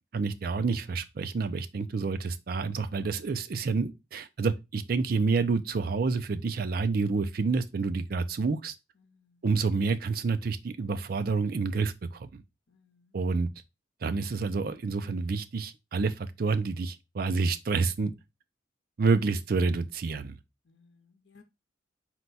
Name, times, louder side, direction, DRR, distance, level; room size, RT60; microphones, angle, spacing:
voice 1, 0.1-8.7 9.4-12.4 13.1-13.5 14.0-18.1 19.0-20.4, right 4 dB, 50° right, 0.4 m, -28 dB
voice 2, 9.0-9.5 12.7-13.2 20.6-21.4, left 4 dB, 70° left, 0.8 m, -62 dB
4.4 x 2.2 x 3.9 m
head